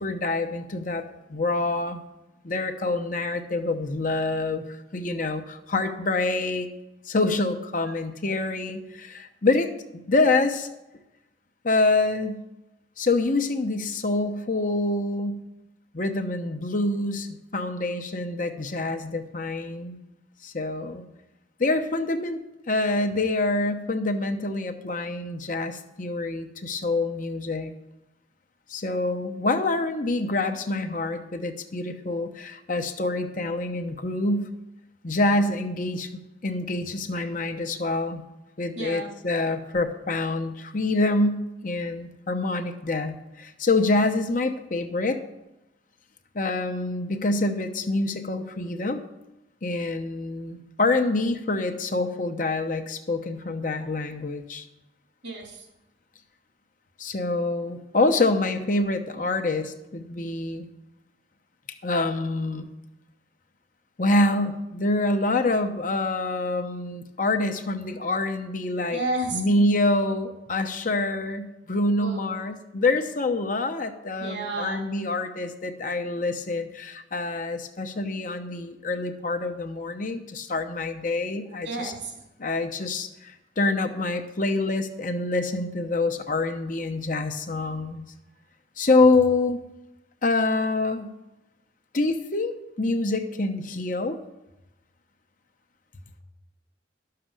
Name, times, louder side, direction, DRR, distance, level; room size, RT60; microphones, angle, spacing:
voice 1, 0.0-2.0 2.4-6.7 7.1-9.8 10.1-10.7 11.6-12.4 13.0-15.4 15.9-20.0 20.4-21.0 21.6-22.4 22.7-27.7 28.7-34.5 35.0-36.1 36.4-38.2 38.6-45.2 46.3-49.0 49.6-54.7 57.0-60.7 61.8-62.7 64.0-69.0 69.3-81.9 82.4-88.0 88.8-89.6 90.2-91.1 91.9-94.2, left 2 dB, 45° left, 6 dB, 0.9 m, -26 dB
voice 2, 38.7-39.1 53.6-53.9 55.2-55.7 68.9-69.5 72.0-72.4 74.2-74.8 81.6-82.1, right 2 dB, 85° right, 1 dB, 3.3 m, -32 dB
11.5 x 6.7 x 7.5 m, 0.95 s
head